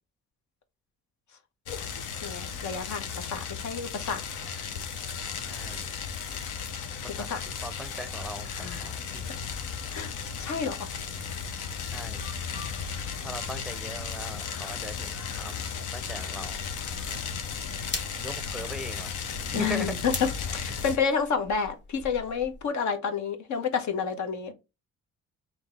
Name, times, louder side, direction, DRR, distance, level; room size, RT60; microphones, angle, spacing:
sound 1, 1.7-21.0, left 6 dB, 85° left, 0.8 m, -35 dB
voice 1, 2.2-4.2 7.2-7.4 8.5-8.9 9.9-10.1 10.4-10.8 19.5-24.5, left 6 dB, 70° left, 1.1 m, -29 dB
voice 2, 5.4-5.8 7.0-7.3 7.6-9.4 11.8-12.3 13.2-16.6 18.2-19.1 19.5-20.0, equal, ahead, 0.5 m, -39 dB
sound 2, 16.3-22.7, left 3 dB, 35° left, 1.3 m, -42 dB
3.9 x 2.9 x 3.4 m
cardioid pair, 90°, 30 cm